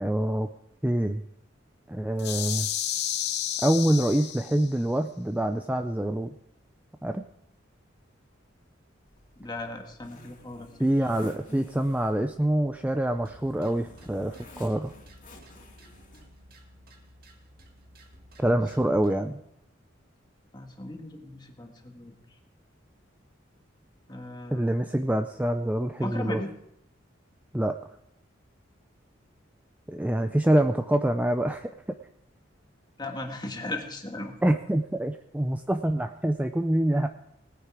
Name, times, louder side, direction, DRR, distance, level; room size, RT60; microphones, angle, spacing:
voice 1, 0.0-0.5 0.8-1.2 1.9-2.7 3.6-6.3 7.0-7.2 10.8-14.9 18.4-19.4 24.5-26.4 27.5-27.8 29.9-31.7 34.4-37.1, right 1 dB, 10° right, 7 dB, 0.4 m, -25 dB
sound 1, 2.2-4.8, left 11 dB, 60° left, 0.9 m, -31 dB
Zipper (clothing), 9.1-16.4, left 1 dB, 40° left, 2.7 m, -53 dB
voice 2, 9.4-10.7 18.4-18.6 20.5-22.2 24.1-24.9 26.0-26.5 33.0-34.3, left 2 dB, 20° left, 3 dB, 1.7 m, -37 dB
sound 2, 13.1-19.2, equal, 50° right, 2.0 m, -54 dB
19.0 x 9.4 x 4.8 m, 0.78 s
head